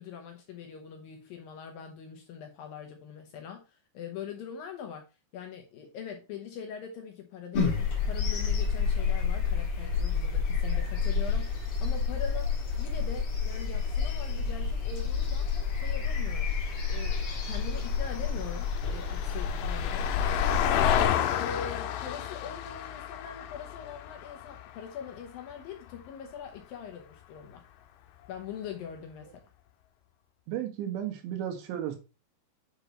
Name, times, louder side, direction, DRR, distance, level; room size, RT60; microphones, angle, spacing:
voice 1, 0.0-5.0 5.3-7.8 8.1-12.5 12.8-15.5 15.7-16.5 16.9-20.1 20.5-27.6 28.3-29.4, left 7 dB, 75° left, 2.3 m, -42 dB
sound 1, 7.5-21.0, left 5 dB, 50° left, 2.4 m, -29 dB
Vehicle, 15.5-26.0 28.3-28.4, left 11 dB, 90° left, 3.1 m, -33 dB
voice 2, 30.5-32.0, right 10 dB, 80° right, 3.7 m, -34 dB
9.2 x 6.5 x 3.0 m
omnidirectional pair, 5.1 m